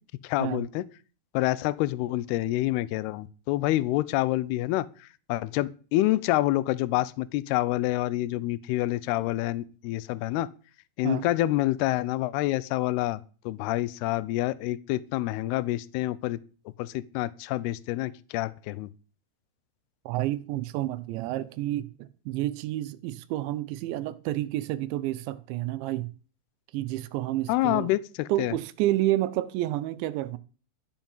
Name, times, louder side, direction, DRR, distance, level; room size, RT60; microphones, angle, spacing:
voice 1, 0.2-0.9 1.3-4.9 5.3-10.5 11.0-13.2 13.5-16.4 16.8-18.9 27.5-28.5, left 16 dB, 80° left, 2.3 m, -27 dB
voice 2, 20.1-26.1 26.7-27.9 28.3-30.4, right 15 dB, 80° right, 3.1 m, -30 dB
14.0 x 7.5 x 7.2 m
omnidirectional pair, 5.4 m